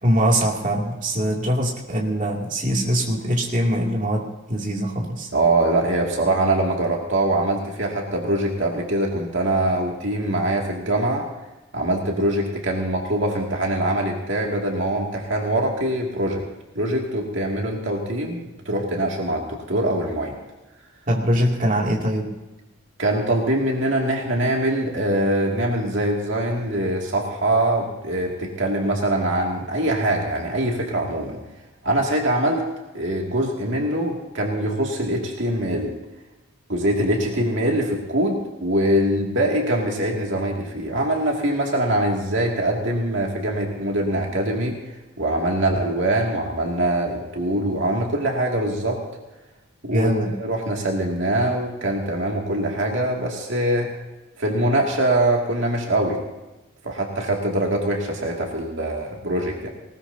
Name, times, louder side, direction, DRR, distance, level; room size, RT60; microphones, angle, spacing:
voice 1, 0.0-5.3 21.1-22.3 49.9-50.3, equal, 35° right, -2 dB, 2.5 m, -22 dB
voice 2, 5.3-11.3 11.7-16.4 16.7-20.3 23.0-31.4 31.8-32.6 32.9-35.9 36.7-44.8 45.2-49.0 49.8-53.9 54.4-56.2 56.8-59.7, right 1 dB, 60° right, -1 dB, 2.3 m, -23 dB
20.0 x 19.5 x 2.8 m, 1.1 s
head